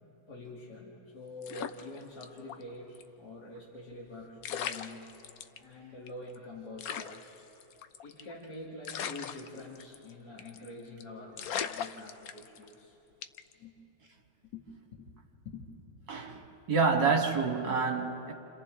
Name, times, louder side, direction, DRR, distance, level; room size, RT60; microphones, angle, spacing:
voice 1, 0.3-5.1 5.6-7.4 8.0-13.0 13.6-13.7 14.5-14.6 14.9-15.1 15.4-15.6, left 2 dB, 55° left, 3.0 m, -46 dB
sound 1, 1.4-2.6 2.9-3.0 4.1-4.2 4.4-5.6 6.1-6.2 6.3-6.4 6.8-8.3 8.8-10.1 10.4-10.7 11.0-11.1 11.4-12.7 13.2-13.5, left 8 dB, 70° left, 0.9 m, -38 dB
voice 2, 16.1-18.3, right 4 dB, 65° right, 2.3 m, -28 dB
29.5 x 28.5 x 3.8 m
omnidirectional pair, 2.2 m